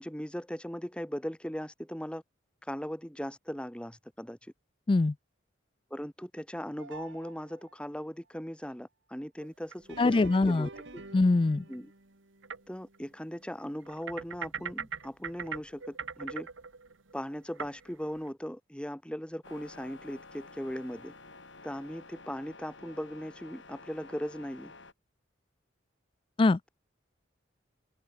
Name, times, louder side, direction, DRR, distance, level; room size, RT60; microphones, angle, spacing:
voice 1, 0.0-2.2 2.6-4.4 5.9-10.2 10.5-11.0 11.7-11.9 12.7-16.5 17.1-21.1 21.6-24.7, equal, 5° left, 1.4 m, -38 dB
sound 1, 6.8-7.9 9.8-14.2 14.6-14.7 15.6-15.7 16.4-16.5, right 3 dB, 70° right, 2.1 m, -49 dB
sound 2, 9.4-10.1 10.8-10.9 11.7-11.8 12.4-12.6 12.9-13.0 13.8-18.3, right 6 dB, 90° right, 1.4 m, -41 dB
voice 2, 10.0-10.7 11.1-11.6 26.4-26.7, left 3 dB, 25° left, 0.3 m, -23 dB
sound 3, 19.4-24.9, left 3 dB, 80° left, 7.4 m, -51 dB
open air
head